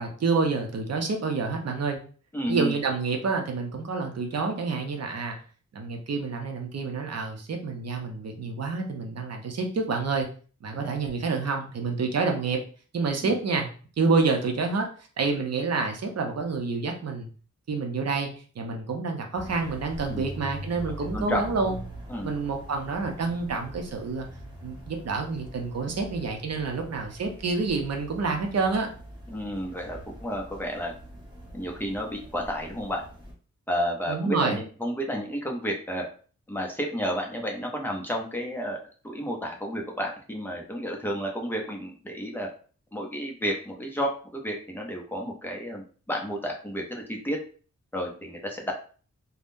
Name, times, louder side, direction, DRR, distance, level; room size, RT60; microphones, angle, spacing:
voice 1, 0.0-2.0 2.5-5.4 5.7-10.3 10.6-12.6 12.9-13.7 14.0-14.9 15.2-17.3 17.7-18.3 18.6-21.8 22.2-24.3 24.6-28.9 34.1-34.6, right 4 dB, 60° right, 3 dB, 0.6 m, -28 dB
voice 2, 2.3-2.7 10.8-11.0 13.2-13.4 20.1-20.3 21.1-21.7 22.1-22.3 29.3-30.9 31.5-33.0 33.7-36.0 36.5-42.5 42.9-47.4 47.9-48.7, equal, 5° left, 0 dB, 0.6 m, -31 dB
sound 1, 19.3-33.3, equal, 15° right, 0.9 m, -43 dB
3.5 x 2.1 x 2.5 m, 0.41 s
wide cardioid pair, 155°, 30 cm